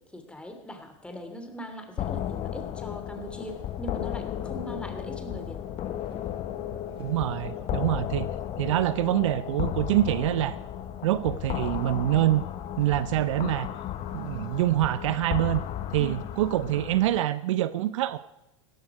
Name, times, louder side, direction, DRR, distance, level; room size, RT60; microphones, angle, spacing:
voice 1, 0.1-5.6 16.0-16.2, equal, 5° left, 5 dB, 2.9 m, -40 dB
sound 1, 2.0-17.2, left 11 dB, 40° left, 1.2 m, -34 dB
sound 2, 3.0-16.7, equal, 30° right, 7.6 m, -51 dB
voice 2, 7.0-10.6 11.0-12.4 12.8-13.7 14.1-15.6 15.9-18.2, right 14 dB, 70° right, 15 dB, 0.7 m, -25 dB
16.5 x 13.5 x 4.8 m, 0.91 s
hypercardioid pair, 95°, 16 cm